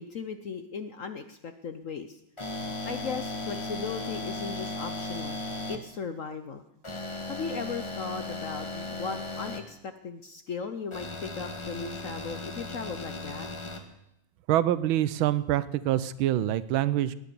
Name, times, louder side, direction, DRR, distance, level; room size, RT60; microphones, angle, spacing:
voice 1, 0.0-2.2 2.8-5.4 5.7-6.6 7.3-13.5, left 5 dB, 60° left, 9 dB, 0.9 m, -37 dB
sound 1, 2.4-5.8 6.8-9.6 10.9-13.8, left 2 dB, 15° left, 1.3 m, -36 dB
voice 2, 14.5-17.1, right 12 dB, 85° right, 16 dB, 1.5 m, -25 dB
19.0 x 10.0 x 6.9 m, 0.82 s
omnidirectional pair, 2.2 m